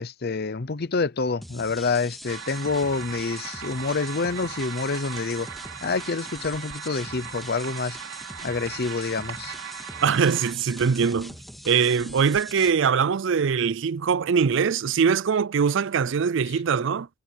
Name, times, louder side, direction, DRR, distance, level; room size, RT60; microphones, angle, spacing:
voice 1, 0.0-5.5 5.8-8.0 8.4-9.5, left 4 dB, 50° left, 0.7 m, -27 dB
sound 1, 1.4-12.7, equal, ahead, 2.1 m, -43 dB
sound 2, 2.3-10.5, right 7 dB, 90° right, 4.2 m, -38 dB
voice 2, 10.0-11.3 11.6-17.1, right 6 dB, 60° right, 0.4 m, -22 dB
head